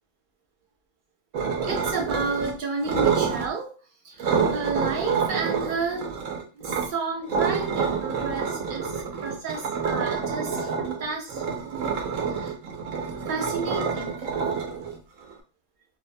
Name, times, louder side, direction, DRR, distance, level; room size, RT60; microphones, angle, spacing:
sound 1, 1.3-2.5 2.8-3.5 4.2-6.9 7.3-15.3, right 6 dB, 90° right, 1.0 m, -27 dB
voice 1, 1.6-3.8 4.0-6.2 6.6-11.4 11.7-11.9 12.3-12.5 13.3-14.3, right 4 dB, 55° right, 0 dB, 0.7 m, -31 dB
2.6 x 2.1 x 2.5 m, 0.37 s
omnidirectional pair, 1.3 m